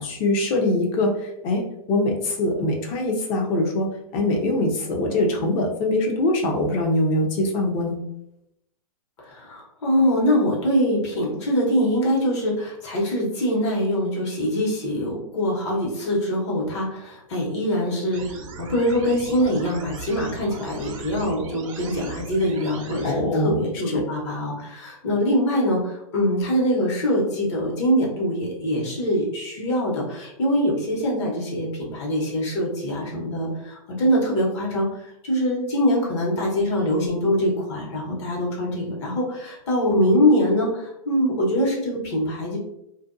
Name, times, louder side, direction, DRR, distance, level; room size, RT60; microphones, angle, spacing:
voice 1, 0.0-1.6 1.9-8.0 23.0-23.6, left 1 dB, 30° left, 2 dB, 0.6 m, -23 dB
voice 2, 9.2-42.6, equal, 55° left, -2 dB, 1.1 m, -23 dB
sound 1, 18.1-23.1, right 3 dB, 60° right, 0.6 m, -38 dB
2.5 x 2.2 x 2.5 m, 0.81 s
hypercardioid pair, 135°, 18 cm